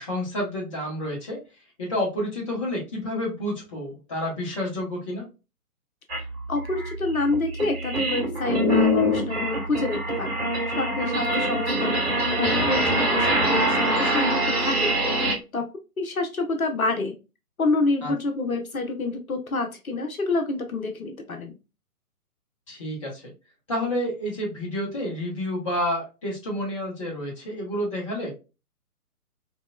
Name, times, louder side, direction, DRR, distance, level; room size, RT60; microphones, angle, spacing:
voice 1, 0.0-1.4 1.8-5.3 18.0-18.1 22.7-23.3 23.7-28.3, left 1 dB, 20° left, -3 dB, 0.8 m, -29 dB
sound 1, 6.1-6.2 6.7-15.3, equal, 45° right, 1.8 m, -24 dB
voice 2, 6.5-10.5 10.8-15.0 15.5-15.6 16.0-17.2 17.6-21.6, left 3 dB, 65° left, 5 dB, 0.8 m, -28 dB
3.0 x 2.9 x 2.2 m, 0.29 s
figure-of-eight pair, 135°, 46 cm